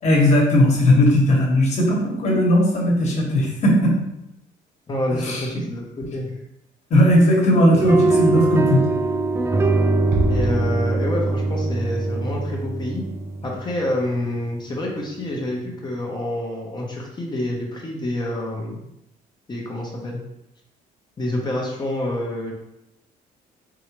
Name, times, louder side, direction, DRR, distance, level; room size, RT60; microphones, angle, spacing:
voice 1, 0.0-4.0 5.1-5.4 6.9-8.8, left 1 dB, 40° left, -2 dB, 1.5 m, -17 dB
voice 2, 4.9-6.3 10.3-13.0 13.4-18.8 19.5-20.2 21.2-22.5, left 1 dB, 25° left, -2 dB, 0.9 m, -27 dB
sound 1, 7.7-14.0, right 2 dB, 15° right, 0.3 m, -22 dB
Bass drum, 10.1-11.5, right 1 dB, 85° right, 0.8 m, -28 dB
4.7 x 2.7 x 3.1 m, 0.84 s
cardioid pair, 110°, 17 cm